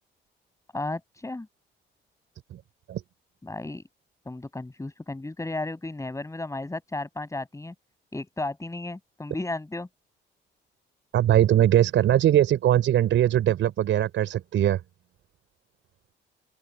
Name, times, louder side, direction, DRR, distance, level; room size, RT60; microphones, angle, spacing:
voice 1, 0.7-1.5 3.4-3.8 4.3-7.7 8.1-9.9, left 2 dB, 15° left, 6.4 m, -34 dB
voice 2, 11.1-14.8, right 11 dB, 75° right, 5.6 m, -21 dB
open air
cardioid pair, 90°, 20 cm